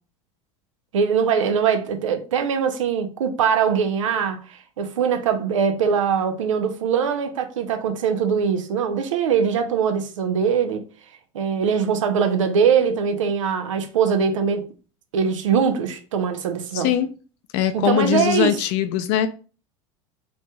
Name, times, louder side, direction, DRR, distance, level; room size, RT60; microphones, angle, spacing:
voice 1, 0.9-10.8 11.3-14.7 15.1-16.9 17.7-18.6, right 7 dB, 85° right, 0.5 m, -22 dB
voice 2, 16.7-17.1 17.5-19.3, left 11 dB, 60° left, 0.4 m, -21 dB
3.1 x 2.8 x 2.2 m
hypercardioid pair, 90°, 16 cm